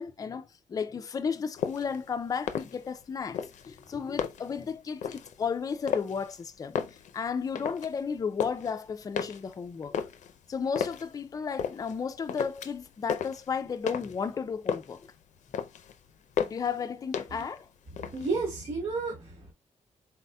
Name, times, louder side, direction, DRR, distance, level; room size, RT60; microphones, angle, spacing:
voice 1, 0.0-3.4 3.7-6.8 7.1-10.0 10.5-15.0 16.4-17.7, left 6 dB, 30° left, 0.4 m, -33 dB
sound 1, 1.6-2.0 2.4-3.0 3.3-4.6 5.0-5.3 5.8-6.4 6.6-8.7 9.2-11.1 11.6-12.0 12.3-12.8 13.1-14.3 14.5-15.1 15.4-15.9 16.4-16.8 17.1-17.6 17.9-18.5, left 7 dB, 85° left, 0.5 m, -34 dB
voice 2, 18.0-19.5, right 3 dB, 60° right, 1.4 m, -32 dB
4.1 x 4.0 x 2.2 m
wide cardioid pair, 155°, 12 cm